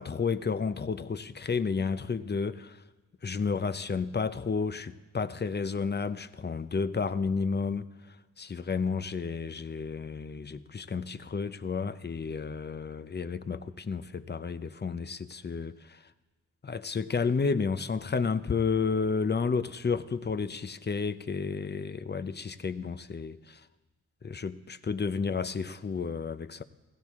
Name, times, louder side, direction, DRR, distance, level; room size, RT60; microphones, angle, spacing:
voice 1, 0.0-2.8 3.2-16.1 16.6-23.7 24.2-26.6, left 5 dB, 30° left, 0.7 m, -31 dB
16.5 x 16.0 x 3.7 m
cardioid pair, 60°, 34 cm